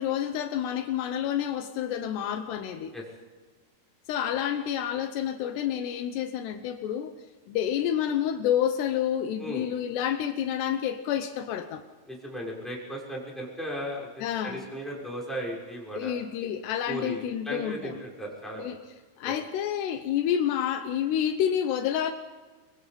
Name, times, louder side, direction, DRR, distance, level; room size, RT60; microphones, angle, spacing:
voice 1, 0.0-2.9 4.1-7.1 7.5-11.8 14.2-14.6 16.0-18.0 18.6-18.8 19.2-22.1, left 9 dB, 80° left, 7 dB, 3.0 m, -29 dB
voice 2, 12.1-16.1 16.9-18.8 19.2-19.3, equal, ahead, -3 dB, 5.6 m, -36 dB
24.5 x 23.0 x 5.3 m, 1.3 s
omnidirectional pair, 4.9 m